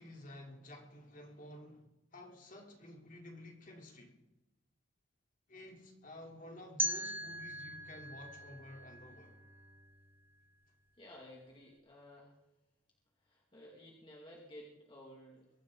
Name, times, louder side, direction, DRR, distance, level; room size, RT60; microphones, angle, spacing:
voice 1, 0.0-4.2 5.5-9.4, left 1 dB, 45° left, 3.7 m, -52 dB
sound 1, 6.8-9.7, right 1 dB, 10° right, 0.9 m, -40 dB
Bowed string instrument, 7.0-11.3, equal, 65° right, 4.3 m, -64 dB
voice 2, 11.0-12.4 13.2-15.5, left 1 dB, 25° left, 2.4 m, -54 dB
23.0 x 14.5 x 4.0 m
head